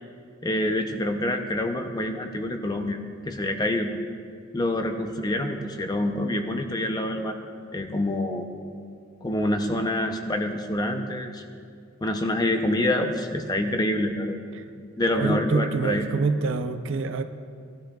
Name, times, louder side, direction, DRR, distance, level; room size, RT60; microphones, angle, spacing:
voice 1, 0.4-3.0 3.3-3.9 4.5-7.4 7.7-8.5 9.2-11.4 12.0-14.4 15.0-16.0, left 1 dB, 20° left, 5 dB, 0.5 m, -26 dB
voice 2, 15.1-17.2, right 4 dB, 60° right, 9 dB, 0.4 m, -26 dB
16.5 x 11.5 x 2.3 m, 2.2 s
head